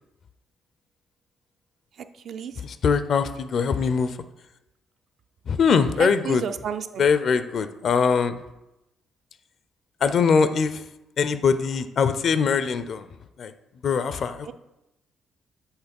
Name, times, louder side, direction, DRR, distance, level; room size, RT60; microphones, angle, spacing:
voice 1, 2.6-4.2 5.5-6.4 7.0-8.4 10.0-10.8 11.2-13.1 13.4-13.5 13.8-14.5, left 6 dB, 60° left, 11 dB, 0.4 m, -22 dB
voice 2, 6.0-7.0 14.4-14.5, right 8 dB, 65° right, 9 dB, 0.4 m, -31 dB
7.2 x 3.2 x 5.2 m, 0.93 s
cardioid pair, 90°, 0 cm